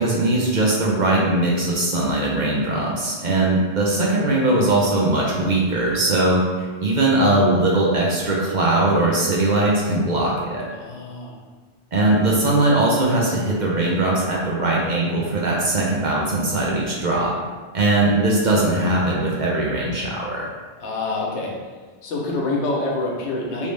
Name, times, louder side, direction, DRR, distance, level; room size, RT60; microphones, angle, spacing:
voice 1, 0.0-10.7 11.9-17.3 17.7-20.5, right 2 dB, 55° right, -3 dB, 0.6 m, -20 dB
voice 2, 10.7-11.4 20.8-21.5 22.0-23.7, left 2 dB, 90° left, -2 dB, 1.0 m, -26 dB
3.2 x 2.7 x 3.2 m, 1.4 s
omnidirectional pair, 1.1 m